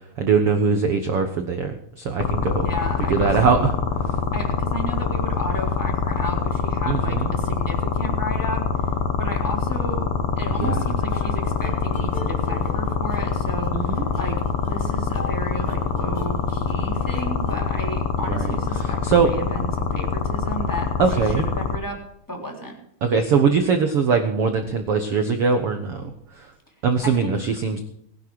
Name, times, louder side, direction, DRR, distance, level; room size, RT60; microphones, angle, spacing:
voice 1, 0.2-2.7 3.1-3.8 6.9-7.3 10.6-10.9 13.7-14.1 18.3-19.3 21.0-21.5 23.0-26.0 26.4-26.5 26.8-27.8, right 5 dB, 90° right, 6 dB, 1.2 m, -21 dB
sound 1, 2.2-21.8, left 6 dB, 65° left, 1.7 m, -24 dB
voice 2, 2.6-3.4 4.3-8.9 9.2-10.1 10.4-22.0 22.3-22.8 27.0-27.3, right 1 dB, 5° left, 1 dB, 3.1 m, -33 dB
sound 2, 10.6-18.5, left 4 dB, 45° left, 2.4 m, -40 dB
19.5 x 11.5 x 4.7 m, 0.75 s
omnidirectional pair, 4.6 m